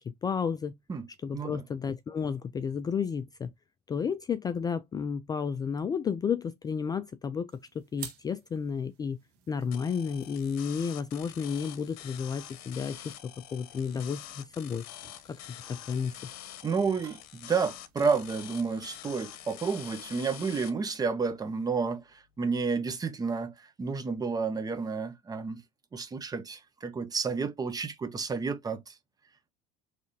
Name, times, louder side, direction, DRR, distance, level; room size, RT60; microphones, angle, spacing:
voice 1, 0.0-0.7 1.2-3.5 3.9-9.2 9.5-14.8 15.3-16.3, left 6 dB, 20° left, 0.3 m, -32 dB
voice 2, 1.3-1.6 16.6-25.6 25.9-29.0, right 5 dB, 20° right, 0.7 m, -31 dB
sound 1, 7.5-20.3, right 8 dB, 85° right, 1.7 m, -54 dB
sound 2, 9.7-20.7, left 12 dB, 80° left, 0.8 m, -46 dB
4.8 x 3.3 x 2.6 m
supercardioid pair, 105°, 19 cm